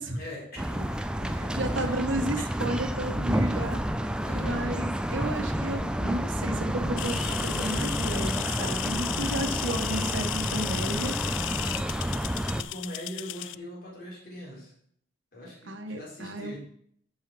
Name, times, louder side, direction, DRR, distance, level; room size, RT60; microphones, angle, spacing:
voice 1, 0.1-2.0 2.5-2.6 4.2-4.6 12.5-14.7 15.3-16.6, equal, 50° left, -4 dB, 4.1 m, -42 dB
sound 1, 0.6-12.6, equal, 5° right, 0.4 m, -30 dB
voice 2, 1.3-3.8 4.3-11.2 15.7-16.6, right 1 dB, 90° right, 5 dB, 1.5 m, -33 dB
sound 2, 7.0-13.6, left 16 dB, 90° left, 0.3 m, -34 dB
12.5 x 5.6 x 4.7 m, 0.65 s
head